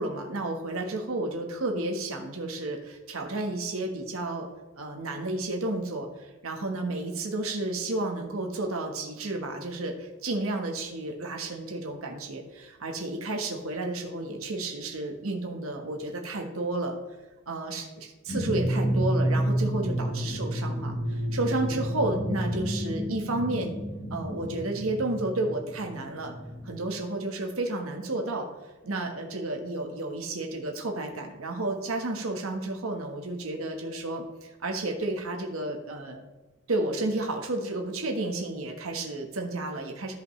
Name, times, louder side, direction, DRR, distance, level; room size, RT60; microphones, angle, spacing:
voice 1, 0.0-4.5 4.8-17.0 17.5-23.8 24.1-26.3 26.6-28.5 28.8-36.2 36.7-40.1, right 2 dB, 90° right, 2 dB, 1.4 m, -32 dB
sound 1, 18.3-26.7, equal, 45° left, 3.1 m, -30 dB
14.0 x 5.3 x 3.2 m, 1.1 s
head